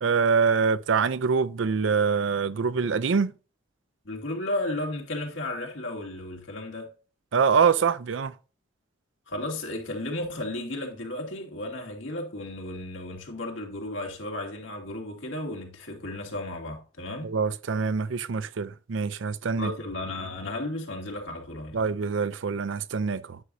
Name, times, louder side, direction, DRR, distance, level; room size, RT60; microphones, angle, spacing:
voice 1, 0.0-3.3 7.3-8.3 17.2-19.7 21.7-23.4, right 5 dB, 80° right, 0.5 m, -25 dB
voice 2, 4.0-6.9 9.3-17.3 19.6-21.8, left 1 dB, 85° left, 2.4 m, -34 dB
9.6 x 6.2 x 2.7 m
head